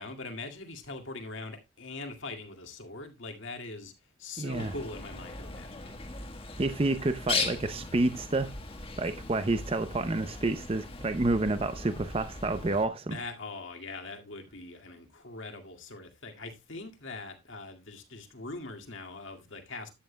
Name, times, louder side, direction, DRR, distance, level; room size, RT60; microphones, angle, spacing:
voice 1, 0.0-3.9 4.2-5.9 13.1-19.9, left 3 dB, 65° left, 2.1 m, -42 dB
voice 2, 4.4-4.7 6.6-8.5 9.0-13.2, right 2 dB, 25° right, 0.6 m, -29 dB
Bird, 4.5-12.8, left 4 dB, 25° left, 1.4 m, -38 dB
12.5 x 9.3 x 2.2 m
head